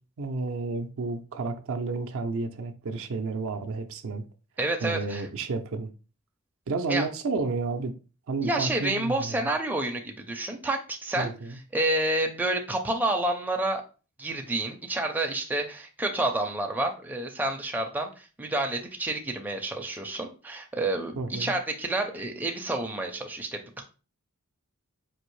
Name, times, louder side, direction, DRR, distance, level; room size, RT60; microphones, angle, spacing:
voice 1, 0.2-4.2 4.8-5.9 6.7-7.9 8.3-9.5 11.2-11.6 21.2-21.5, right 3 dB, 65° right, 0.5 m, -31 dB
voice 2, 4.6-5.3 6.9-7.1 8.4-13.8 14.2-23.8, right 2 dB, 10° right, 0.4 m, -29 dB
4.4 x 2.7 x 3.1 m
head